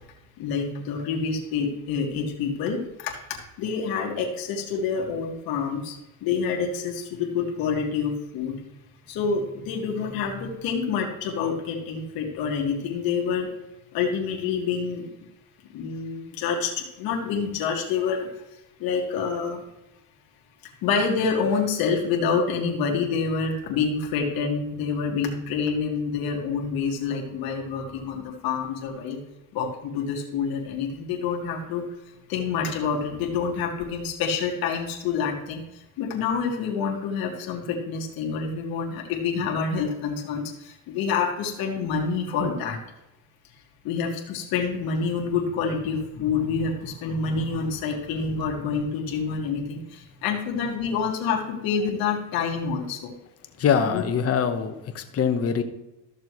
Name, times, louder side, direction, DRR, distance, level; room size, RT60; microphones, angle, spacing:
voice 1, 0.4-8.6 9.1-13.5 13.9-15.1 15.7-18.3 18.8-19.6 20.8-29.2 29.5-31.8 32.3-42.8 43.8-53.1 53.8-54.0, left 5 dB, 75° left, -1 dB, 1.9 m, -27 dB
voice 2, 53.6-55.6, left 7 dB, 40° left, 7 dB, 1.1 m, -23 dB
13.0 x 6.7 x 3.1 m, 0.95 s
cardioid pair, 115°, 36 cm